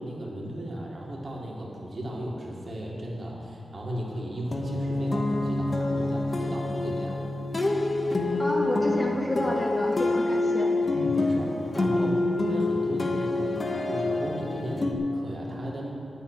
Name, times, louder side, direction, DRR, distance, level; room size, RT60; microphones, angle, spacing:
voice 1, 0.0-7.2 10.9-13.6 13.9-15.9, right 1 dB, 45° right, -3 dB, 2.4 m, -35 dB
sound 1, 4.5-14.9, left 2 dB, 40° left, 1.0 m, -27 dB
voice 2, 8.4-10.8, equal, 15° left, -2 dB, 1.9 m, -30 dB
9.5 x 7.0 x 9.0 m, 2.5 s
cardioid pair, 65°, 0 cm